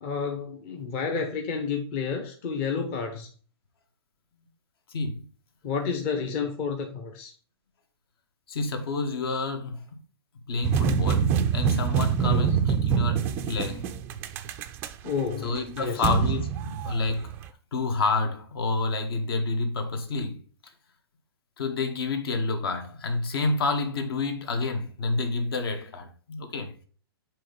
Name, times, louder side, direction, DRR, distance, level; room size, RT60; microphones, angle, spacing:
voice 1, 0.0-3.3 5.6-7.3 12.2-12.6 15.0-16.0, left 5 dB, 30° left, 0.8 m, -30 dB
voice 2, 4.9-5.2 8.5-9.8 10.5-13.8 15.4-17.3 17.7-20.4 21.6-26.7, left 3 dB, 65° left, 1.6 m, -29 dB
sound 1, 10.6-17.5, right 7 dB, 15° right, 0.3 m, -25 dB
7.5 x 3.1 x 5.1 m
hypercardioid pair, 160°, 13 cm